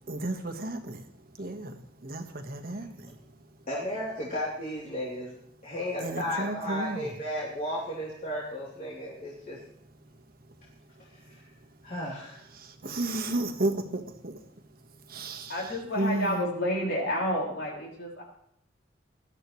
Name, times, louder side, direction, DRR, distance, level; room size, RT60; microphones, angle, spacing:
voice 1, 0.1-1.0 1.4-3.1 6.0-7.1 12.5-14.4 15.1-15.5 16.0-16.4, right 2 dB, 55° right, 4 dB, 1.5 m, -32 dB
voice 2, 3.7-5.3 5.6-9.6 11.2-11.4 11.8-12.4, equal, 45° left, -7 dB, 3.3 m, -34 dB
voice 3, 15.5-18.2, equal, 70° left, -2 dB, 5.4 m, -30 dB
20.0 x 12.5 x 3.2 m, 0.69 s
head